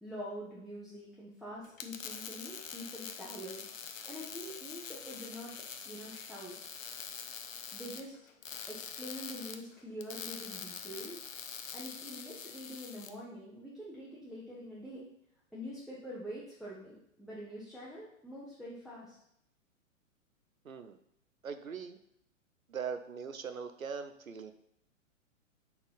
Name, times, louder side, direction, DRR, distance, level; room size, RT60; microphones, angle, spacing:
voice 1, 0.0-3.6 4.0-5.5 5.8-6.5 7.7-8.2 8.7-11.2 11.7-15.1 15.5-19.2, equal, ahead, -8 dB, 0.6 m, -45 dB
sound 1, 1.6-13.1, left 6 dB, 75° left, 0.8 m, -45 dB
voice 2, 20.6-21.0 21.4-22.0 22.7-24.5, right 6 dB, 85° right, 9 dB, 0.7 m, -40 dB
4.3 x 4.2 x 5.4 m, 0.73 s
figure-of-eight pair, 110°, 40 cm